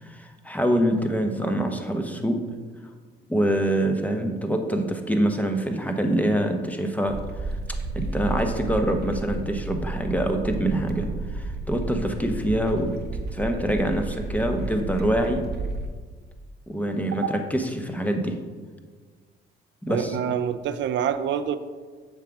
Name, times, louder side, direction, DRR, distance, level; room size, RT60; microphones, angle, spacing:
voice 1, 0.0-2.4 3.3-7.2 7.5-7.6 7.9-12.9 13.3-15.4 16.7-18.4 19.8-20.2, right 1 dB, 5° left, 5 dB, 0.8 m, -25 dB
sound 1, 7.1-15.9, right 2 dB, 55° right, 0.8 m, -32 dB
voice 2, 19.9-21.6, right 8 dB, 70° right, 10 dB, 0.4 m, -26 dB
7.1 x 3.8 x 5.9 m, 1.5 s
cardioid pair, 90°, 20 cm